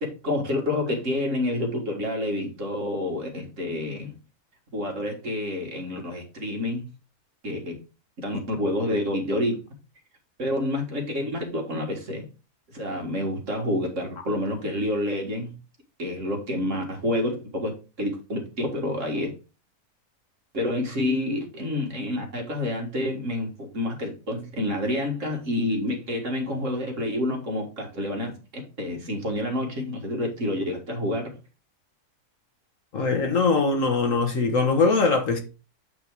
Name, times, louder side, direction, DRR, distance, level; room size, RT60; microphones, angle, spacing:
voice 1, 0.0-4.1 4.7-6.9 7.4-7.8 8.2-9.6 10.4-12.3 12.7-15.5 16.0-19.3 20.5-31.3, left 1 dB, 50° right, 2.0 m, -28 dB
voice 2, 32.9-35.4, left 4 dB, 55° left, 1.5 m, -22 dB
8.5 x 3.5 x 4.6 m
omnidirectional pair, 1.7 m